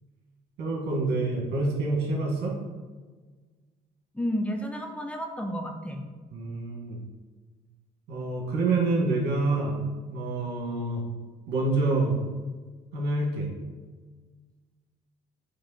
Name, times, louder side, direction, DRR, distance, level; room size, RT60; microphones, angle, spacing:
voice 1, 0.6-2.5 6.3-7.0 8.1-9.8 10.1-11.0 11.5-12.2 12.9-13.5, right 2 dB, 80° right, -1 dB, 2.0 m, -27 dB
voice 2, 4.1-6.0, equal, 5° left, 3 dB, 0.7 m, -31 dB
8.0 x 3.3 x 4.1 m, 1.4 s
cardioid pair, 110°, 17 cm